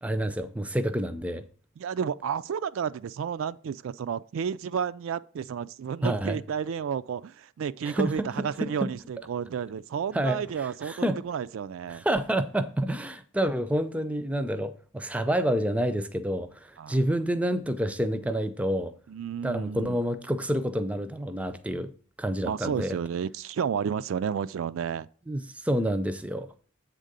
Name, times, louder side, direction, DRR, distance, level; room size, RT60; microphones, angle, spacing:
voice 1, 0.0-1.4 6.0-6.4 7.8-8.1 8.8-8.9 10.1-10.4 10.8-11.2 11.9-18.9 19.4-21.9 22.2-23.0 25.3-26.5, right 1 dB, 5° right, 0.5 m, -28 dB
voice 2, 1.8-10.9 11.2-12.0 16.8-17.0 19.1-20.0 22.4-25.1, right 7 dB, 65° right, 0.3 m, -31 dB
8.1 x 3.8 x 6.6 m
head